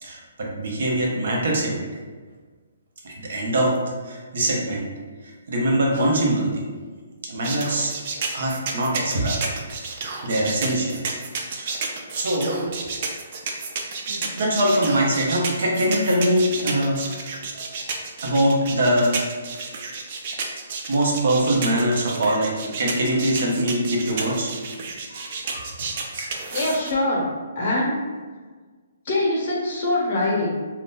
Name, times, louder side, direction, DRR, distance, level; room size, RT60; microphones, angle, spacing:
voice 1, 0.0-1.9 3.0-3.8 4.0-4.9 5.5-6.7 7.2-7.9 8.3-9.4 10.2-11.0 11.5-11.7 12.1-12.6 14.1-17.0 17.5-17.7 18.2-19.1 20.9-24.5 25.1-26.3, right 1 dB, 65° right, -2 dB, 0.9 m, -23 dB
sound 1, 7.4-26.9, right 4 dB, 45° right, 0.4 m, -31 dB
voice 2, 26.5-27.2 27.6-28.1 29.0-30.5, left 1 dB, 45° left, -4 dB, 1.0 m, -23 dB
2.7 x 2.4 x 3.7 m, 1.4 s
hypercardioid pair, 160°, 0 cm